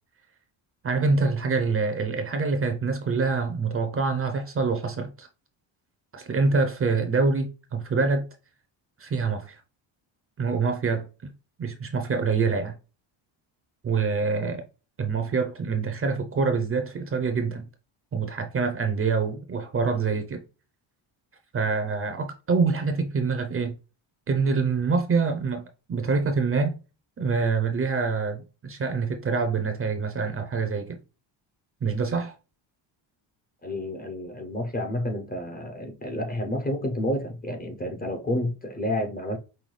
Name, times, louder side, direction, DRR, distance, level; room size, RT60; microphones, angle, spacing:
voice 1, 0.8-5.3 6.1-8.3 9.0-9.6 10.4-11.3 11.6-12.7 13.8-14.6 15.0-17.7 18.1-20.4 21.5-23.7 24.3-25.6 25.9-26.8 27.2-31.0 31.8-32.3, right 4 dB, 30° right, 0.5 m, -25 dB
voice 2, 33.6-39.4, left 1 dB, 20° left, 0.5 m, -30 dB
5.5 x 2.2 x 3.1 m
cardioid pair, 160°, 48 cm